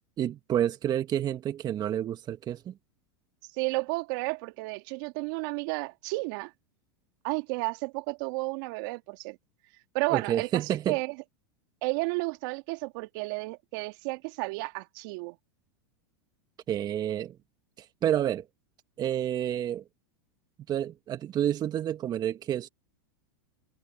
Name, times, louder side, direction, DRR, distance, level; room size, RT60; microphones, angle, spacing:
voice 1, 0.2-2.7 10.1-11.0 16.7-17.4 17.8-18.4 19.0-19.8 20.7-22.7, right 10 dB, 35° right, 1.5 m, -29 dB
voice 2, 3.6-6.5 7.2-9.4 9.9-11.1 11.8-15.4, right 27 dB, 60° right, 2.1 m, -32 dB
hypercardioid pair, 105°, 12 cm